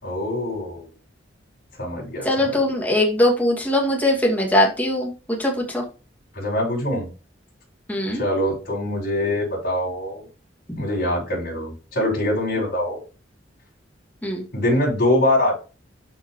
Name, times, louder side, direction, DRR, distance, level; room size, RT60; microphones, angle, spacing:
voice 1, 0.0-0.9 1.8-2.6 6.3-7.1 8.1-10.2 10.8-13.0 14.5-15.5, left 1 dB, 55° left, -5 dB, 5.6 m, -23 dB
voice 2, 2.2-5.8 7.9-8.2 10.7-10.8 14.2-14.4, left 1 dB, 10° left, -1 dB, 2.4 m, -21 dB
12.0 x 5.2 x 3.2 m, 0.32 s
head